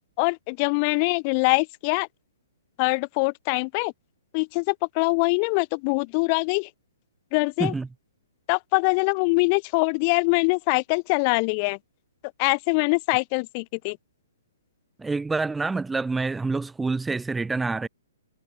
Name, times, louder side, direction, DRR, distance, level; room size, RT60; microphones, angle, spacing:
voice 1, 0.2-2.1 2.8-3.9 4.3-6.7 7.3-7.7 8.5-11.8 12.4-14.0, left 34 dB, 30° left, 4.4 m, -23 dB
voice 2, 15.0-17.9, right 3 dB, 5° right, 2.9 m, -27 dB
hypercardioid pair, 155°, 0 cm